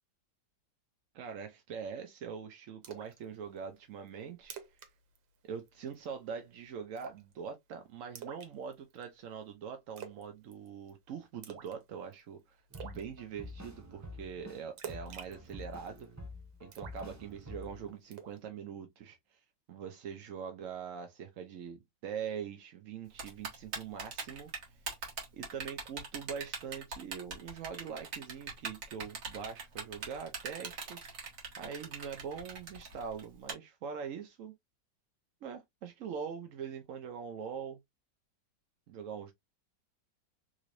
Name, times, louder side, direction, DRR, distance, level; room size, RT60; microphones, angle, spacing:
voice 1, 1.1-4.6 5.5-16.1 16.6-19.4 19.7-24.8 25.3-31.3 31.6-34.6 35.4-37.8 38.9-39.3, right 7 dB, 70° right, 0.8 m, -43 dB
Splash splatter, 2.8-3.2 3.6-3.7 4.1-4.2 4.4-4.9 5.2-5.4 5.7-6.1 7.0-7.3 8.2-9.0 10.0-10.3 10.5-10.9 11.4-11.8 12.1-12.2 12.7-13.0 14.8-16.0 16.7-17.6 18.1-18.4, right 7 dB, 90° right, 1.6 m, -46 dB
sound 1, 12.7-14.6 14.9-17.9, left 1 dB, 20° right, 0.5 m, -47 dB
Typing, 23.2-33.5, right 4 dB, 50° right, 1.6 m, -40 dB
3.8 x 3.2 x 2.4 m
omnidirectional pair, 2.0 m